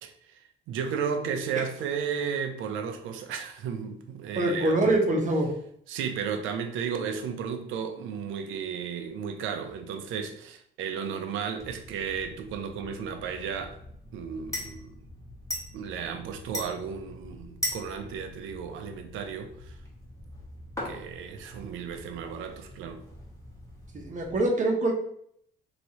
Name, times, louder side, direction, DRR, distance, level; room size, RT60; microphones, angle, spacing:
voice 1, 0.0-4.9 5.9-13.8 14.1-15.0 15.7-19.8 20.8-23.0, right 7 dB, 90° right, 0.5 m, -34 dB
voice 2, 4.4-5.5 23.9-24.9, right 1 dB, 40° right, 0.9 m, -24 dB
sound 1, 11.6-24.4, left 1 dB, 15° left, 1.1 m, -41 dB
3.0 x 2.7 x 2.8 m
cardioid pair, 90°, 20 cm